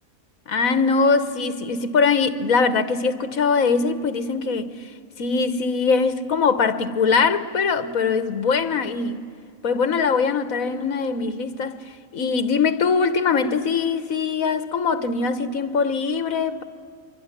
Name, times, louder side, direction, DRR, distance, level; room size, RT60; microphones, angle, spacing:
voice 1, 0.5-4.7 5.2-9.2 9.6-11.8 12.1-16.6, left 5 dB, 70° left, 1.7 m, -22 dB
25.5 x 23.5 x 10.0 m
omnidirectional pair, 1.5 m